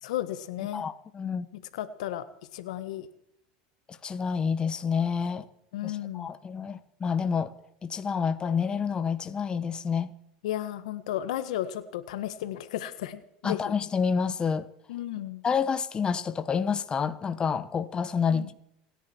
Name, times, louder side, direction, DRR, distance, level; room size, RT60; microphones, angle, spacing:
voice 1, 0.0-0.9 1.7-2.2 2.5-3.1 5.7-6.3 10.4-13.8 14.9-15.4 18.3-18.5, left 12 dB, 85° left, 1.5 m, -34 dB
voice 2, 0.7-1.5 3.9-5.4 5.8-7.5 7.8-10.1 13.4-14.7 15.4-18.5, left 6 dB, 25° left, 1.2 m, -28 dB
28.0 x 10.5 x 4.6 m
supercardioid pair, 115°, 4 cm